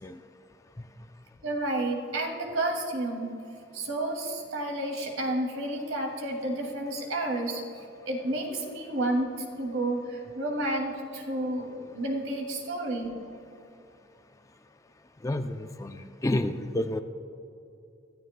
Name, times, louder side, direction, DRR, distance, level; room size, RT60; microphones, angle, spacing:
voice 1, 1.4-3.3 3.7-7.6 8.1-13.2, right 1 dB, 90° right, 1 dB, 2.4 m, -31 dB
voice 2, 15.2-17.0, left 1 dB, 15° left, 8 dB, 0.4 m, -30 dB
24.0 x 13.5 x 2.2 m, 2.7 s
head